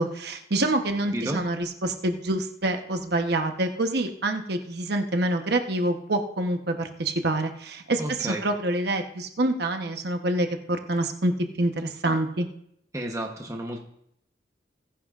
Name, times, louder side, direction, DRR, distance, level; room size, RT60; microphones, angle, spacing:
voice 1, 0.0-12.5, right 1 dB, 65° right, 5 dB, 1.0 m, -26 dB
voice 2, 8.0-8.4 12.9-13.8, right 1 dB, 20° right, 1 dB, 1.0 m, -31 dB
20.5 x 10.0 x 2.5 m, 0.72 s
head